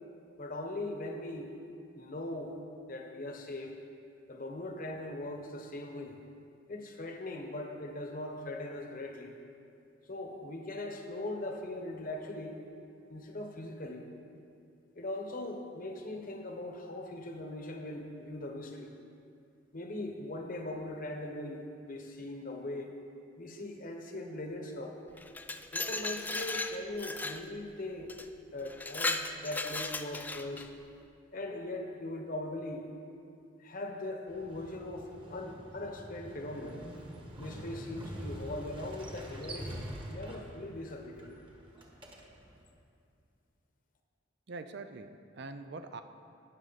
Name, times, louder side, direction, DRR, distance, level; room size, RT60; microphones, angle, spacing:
voice 1, 0.4-1.5 1.9-2.5 2.9-3.7 4.3-6.2 6.7-9.3 10.1-12.6 13.1-14.0 14.9-18.9 19.7-22.9 23.4-25.0 25.7-28.1 28.5-30.7 31.3-32.9 33.6-36.8 37.4-41.3, left 1 dB, 45° left, 3 dB, 1.1 m, -40 dB
Glass, 25.2-27.4 28.1-28.3 28.7-30.7, left 2 dB, 10° left, 0.3 m, -36 dB
Motorcycle, 34.3-42.6, equal, 25° right, 1.4 m, -45 dB
voice 2, 44.5-46.0, right 3 dB, 60° right, 9 dB, 0.5 m, -44 dB
18.5 x 6.4 x 4.1 m, 2.5 s
head